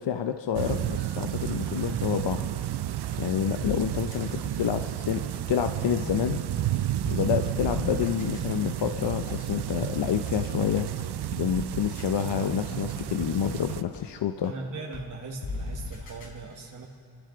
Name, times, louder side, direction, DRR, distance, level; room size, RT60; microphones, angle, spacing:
voice 1, 0.0-2.5 3.2-6.4 7.0-14.5, left 9 dB, 60° left, 7 dB, 0.7 m, -28 dB
sound 1, 0.5-13.8, right 12 dB, 55° right, 0.5 m, -31 dB
sound 2, 0.7-2.2 2.6-2.7 3.1-3.2 3.6-3.7 4.1-4.2 4.6-6.1 6.6-6.7 7.1-7.2 7.6-10.0 10.5-10.6 11.0-11.1 11.5-11.6 12.0-12.1 12.5-14.0 14.4-14.5 14.9-15.0 15.4-16.3, left 3 dB, 75° left, 3.8 m, -38 dB
voice 2, 14.4-16.9, right 3 dB, 40° right, -2 dB, 1.5 m, -39 dB
28.5 x 13.0 x 3.9 m, 2.2 s
wide cardioid pair, 150°, 48 cm